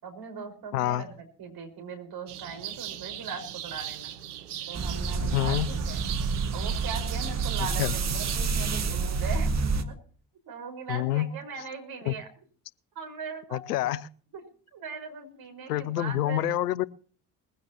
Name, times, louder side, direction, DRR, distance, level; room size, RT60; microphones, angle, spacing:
voice 1, 0.0-4.1 4.7-6.0 6.5-9.9 10.5-12.3 12.9-13.6 14.3-14.4 14.7-16.5, right 5 dB, 50° right, 5 dB, 5.2 m, -40 dB
voice 2, 0.7-1.0 5.3-5.7 7.8-7.9 10.9-11.3 12.1-12.2 13.5-14.0 15.7-16.8, left 14 dB, 80° left, 23 dB, 0.6 m, -27 dB
sound 1, 2.3-8.4, right 11 dB, 75° right, 1.2 m, -38 dB
sound 2, 4.7-9.8, right 4 dB, 35° right, 1.9 m, -28 dB
21.0 x 15.5 x 2.9 m, 0.44 s
figure-of-eight pair, 50°, 46 cm